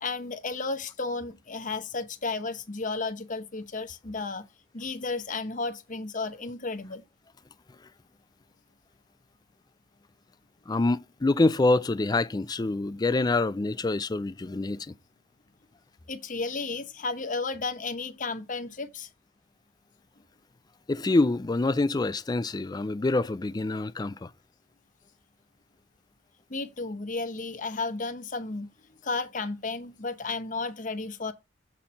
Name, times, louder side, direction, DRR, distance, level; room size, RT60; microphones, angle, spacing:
voice 1, 0.0-4.4 4.7-7.0 16.1-19.1 26.5-28.7 29.0-31.3, left 3 dB, 40° left, 0.9 m, -33 dB
voice 2, 10.7-14.9 20.9-24.3, left 2 dB, 20° left, 0.4 m, -26 dB
7.4 x 4.3 x 5.2 m
head